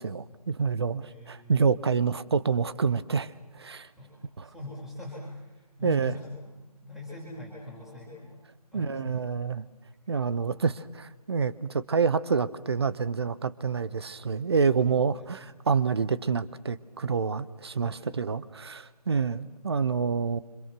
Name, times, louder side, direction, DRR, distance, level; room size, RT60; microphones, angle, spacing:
voice 1, 0.0-3.9 4.4-4.5 5.8-6.1 8.7-9.7 10.1-20.4, right 5 dB, 40° right, 16 dB, 1.0 m, -27 dB
voice 2, 1.0-1.7 4.0-4.2 4.4-6.4 6.8-8.3 8.7-9.2 15.1-15.3 17.8-18.0, left 1 dB, ahead, -5 dB, 5.0 m, -41 dB
29.5 x 26.0 x 6.2 m, 1.1 s
figure-of-eight pair, 160°, 20 cm